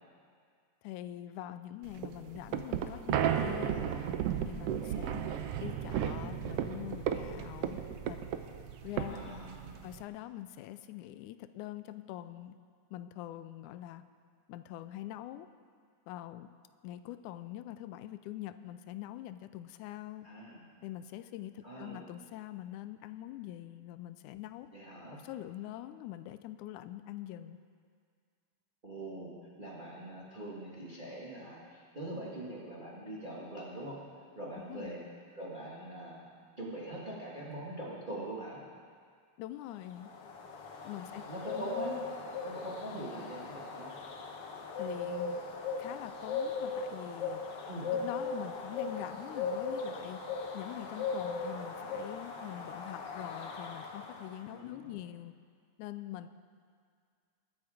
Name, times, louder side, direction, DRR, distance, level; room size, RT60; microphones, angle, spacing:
voice 1, 0.8-3.9 4.5-8.2 8.8-9.4 9.8-12.6 12.9-14.0 14.5-15.5 16.1-16.5 16.8-20.3 20.8-24.7 25.1-27.6 34.7-34.9 39.4-40.1 40.8-41.2 41.6-41.7 44.8-45.4 45.8-47.4 47.9-50.2 50.5-55.3 55.8-56.3, left 13 dB, 90° left, 12 dB, 2.0 m, -44 dB
sound 1, 1.9-10.0, right 9 dB, 85° right, 1.3 m, -34 dB
voice 2, 9.0-9.8 20.2-20.6 21.6-22.0 24.7-25.2 28.8-34.0 34.3-35.0 35.3-36.2 36.6-38.6 41.1-42.0 42.4-43.9 47.7-47.9 54.5-55.0, right 1 dB, 20° right, -5 dB, 1.4 m, -43 dB
sound 2, 39.8-54.4, left 4 dB, 60° left, 1.7 m, -38 dB
21.0 x 7.9 x 4.8 m, 2.1 s
omnidirectional pair, 3.4 m